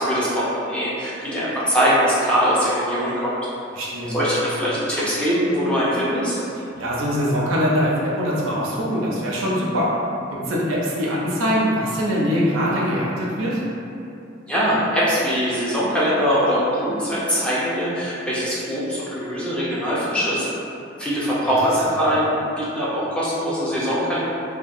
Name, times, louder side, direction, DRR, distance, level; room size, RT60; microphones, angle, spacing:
voice 1, 0.0-3.4 4.1-6.4 14.5-20.5 21.0-24.2, equal, 5° left, -9 dB, 0.4 m, -22 dB
voice 2, 3.7-4.2 6.8-9.9 10.3-13.6 21.5-21.6 21.8-22.0, equal, 80° right, -5 dB, 0.5 m, -23 dB
2.8 x 2.2 x 2.5 m, 2.7 s
head